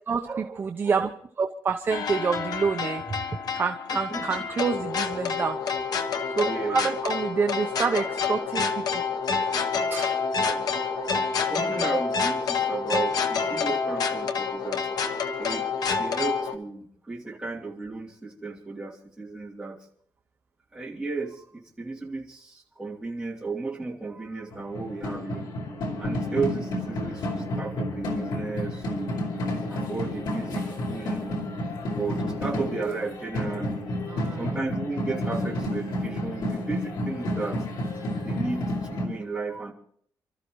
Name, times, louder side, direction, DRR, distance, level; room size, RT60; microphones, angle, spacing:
voice 1, 0.1-1.1 1.4-3.2 3.5-5.6 6.4-9.0 9.9-10.2 10.7-11.3 34.1-34.6, right 5 dB, 30° right, 5 dB, 0.8 m, -28 dB
sound 1, 1.9-16.5, left 5 dB, 65° left, 1.4 m, -28 dB
voice 2, 3.9-4.5 6.4-6.9 10.4-10.7 11.5-14.9 15.4-15.7 16.0-19.8 20.7-25.5 26.0-29.1 29.7-31.2 32.0-33.9 34.4-37.6 38.2-39.7, right 4 dB, 10° right, -3 dB, 2.8 m, -34 dB
sound 2, 24.5-39.1, left 1 dB, 85° left, 4.7 m, -30 dB
29.0 x 13.5 x 3.1 m, 0.62 s
wide cardioid pair, 180°, 7 cm